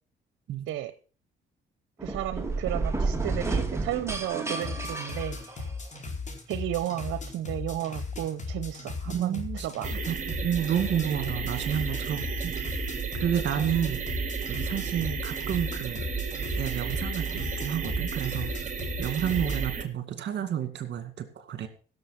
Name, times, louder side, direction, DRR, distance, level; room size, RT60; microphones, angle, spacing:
sound 1, 2.0-6.0, right 3 dB, 15° right, 2.4 m, -31 dB
voice 1, 2.0-5.7 6.5-9.9 10.6-10.7, right 13 dB, 85° right, 13 dB, 0.8 m, -33 dB
sound 2, 4.6-19.6, left 3 dB, 40° left, 4.2 m, -37 dB
voice 2, 9.1-12.5 13.1-14.0 14.5-16.0 16.6-18.5 19.0-21.7, right 9 dB, 65° right, 9 dB, 2.2 m, -30 dB
sound 3, 9.8-19.8, right 6 dB, 40° right, 2.5 m, -33 dB
16.0 x 7.2 x 5.7 m, 0.39 s
cardioid pair, 90°, 20 cm